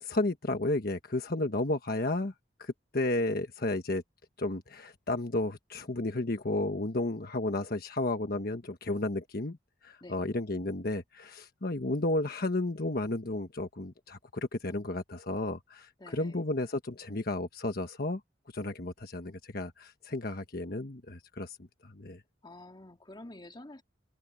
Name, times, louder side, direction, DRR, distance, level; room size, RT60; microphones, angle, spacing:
voice 1, 0.0-2.3 2.6-4.0 4.4-9.6 9.8-18.2 18.5-21.6 21.8-22.2, left 2 dB, 55° left, 1.3 m, -32 dB
voice 2, 16.0-16.4 22.4-23.8, left 1 dB, 25° left, 2.4 m, -48 dB
head